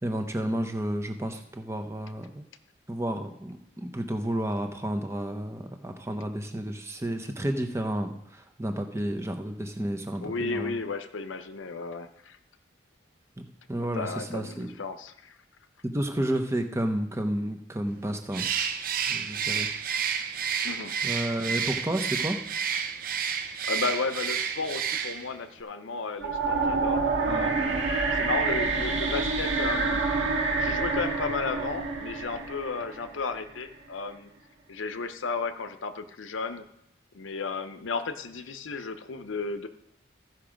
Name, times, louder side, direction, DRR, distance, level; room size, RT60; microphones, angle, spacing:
voice 1, 0.0-2.5 2.9-10.7 13.4-14.8 15.8-18.5 19.0-19.7 21.0-22.4 27.3-27.6, right 1 dB, 15° right, 6 dB, 0.8 m, -31 dB
voice 2, 10.2-12.4 13.9-15.4 20.6-20.9 23.7-27.8 28.1-30.0 30.5-34.3 34.7-36.6 37.1-39.7, left 4 dB, 90° left, 10 dB, 0.7 m, -33 dB
Bird, 18.3-25.4, right 7 dB, 50° right, 0.7 m, -30 dB
sound 1, 26.2-33.3, right 4 dB, 75° right, 1.8 m, -27 dB
14.0 x 6.0 x 5.1 m, 0.81 s
head